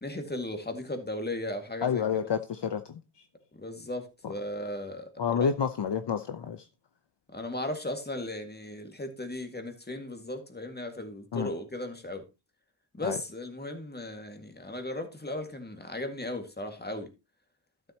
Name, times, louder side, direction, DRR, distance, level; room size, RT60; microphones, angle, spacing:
voice 1, 0.0-2.0 3.6-5.1 5.4-5.5 7.3-12.2 12.9-17.1, left 1 dB, 20° left, 2.0 m, -36 dB
voice 2, 1.8-3.0 5.2-6.6 11.3-11.5 13.0-13.2, left 7 dB, 60° left, 0.8 m, -29 dB
12.5 x 7.5 x 2.9 m
wide cardioid pair, 85°, 48 cm